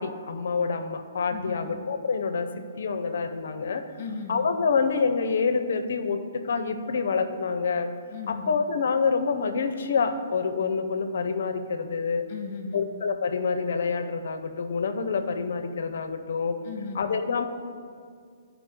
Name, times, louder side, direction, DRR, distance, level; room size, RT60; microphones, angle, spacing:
voice 1, 0.0-2.5 2.8-3.8 4.3-7.9 8.3-12.3 12.7-16.6 16.9-17.4, left 5 dB, 65° left, 9 dB, 0.6 m, -27 dB
voice 2, 1.3-1.8 4.0-4.5 8.1-8.6 12.3-12.8 16.6-17.2, left 4 dB, 40° left, 3 dB, 1.1 m, -36 dB
12.5 x 4.9 x 3.7 m, 2.2 s
hypercardioid pair, 165°, 0 cm